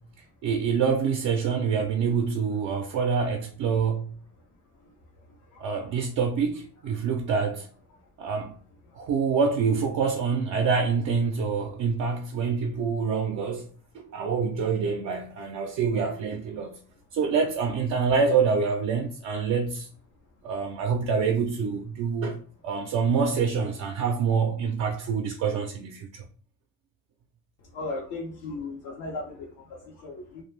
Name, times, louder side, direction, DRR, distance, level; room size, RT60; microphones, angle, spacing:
voice 1, 0.4-4.2 5.6-7.7 8.2-8.6 9.0-13.7 13.9-16.8 17.1-19.9 20.4-26.2, right 5 dB, 80° right, 0.5 m, -26 dB
voice 2, 4.8-6.0 8.9-9.0 27.7-30.4, left 2 dB, 85° left, 0.7 m, -38 dB
2.4 x 2.2 x 3.1 m
cardioid pair, 90°, 30 cm